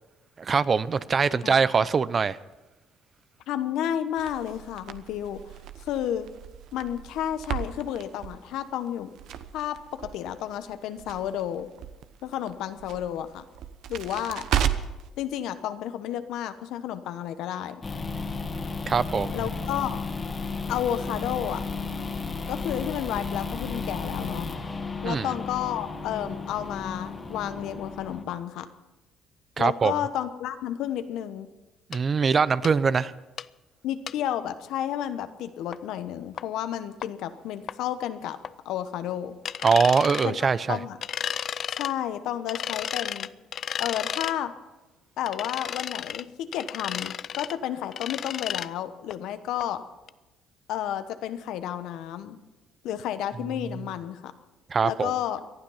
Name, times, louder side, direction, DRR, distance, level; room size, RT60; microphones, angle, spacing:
voice 1, 0.4-2.4 18.9-19.4 25.0-25.3 29.6-29.9 31.9-33.1 39.6-40.8 54.7-55.1, right 5 dB, 40° right, 17 dB, 0.6 m, -23 dB
voice 2, 3.5-5.4 5.9-6.3 6.7-9.1 9.5-11.7 12.2-13.4 13.9-14.4 15.2-17.8 19.3-20.0 20.7-21.6 22.5-24.5 25.0-28.7 29.6-31.5 33.8-38.4 38.6-39.3 40.2-41.0 41.7-43.3 43.8-44.5 45.2-49.8 50.7-52.4 52.8-54.3 54.8-55.4, left 10 dB, 75° left, 11 dB, 1.0 m, -31 dB
Crackle, 4.2-15.1, right 9 dB, 70° right, 0.9 m, -35 dB
sound 1, 17.8-28.2, left 4 dB, 30° left, 1.9 m, -33 dB
sound 2, 31.9-32.0 32.6-32.7 33.4-33.5 34.1-34.2 35.7-35.8 36.4-36.5 37.0-37.1 37.7-37.8 38.4-38.5 39.5-40.3 41.0-41.9 42.5-44.4 45.3-46.2 46.5-47.5 47.9-48.7 49.1-49.2 49.6-49.7 50.1-50.2, left 8 dB, 55° left, 0.4 m, -33 dB
18.5 x 12.0 x 5.7 m, 1.1 s
supercardioid pair, 85°, 0 cm